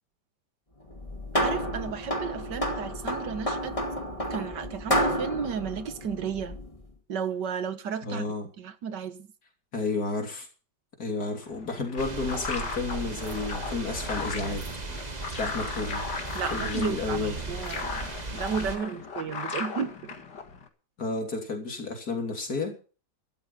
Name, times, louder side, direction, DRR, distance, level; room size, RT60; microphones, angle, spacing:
sound 1, 0.9-6.8, equal, 20° left, 2.4 m, -30 dB
voice 1, 1.3-3.7 4.3-6.6 7.1-8.2 8.6-9.3 16.3-20.1, right 7 dB, 85° right, 1.9 m, -33 dB
voice 2, 8.0-8.5 9.7-10.5 11.0-14.7 15.0-16.0 16.5-17.3 21.0-22.7, left 3 dB, 60° left, 3.8 m, -31 dB
sound 2, 11.4-20.7, left 5 dB, 80° left, 2.6 m, -37 dB
sound 3, 12.0-18.8, right 3 dB, 25° right, 1.6 m, -37 dB
13.0 x 13.0 x 5.7 m
omnidirectional pair, 1.8 m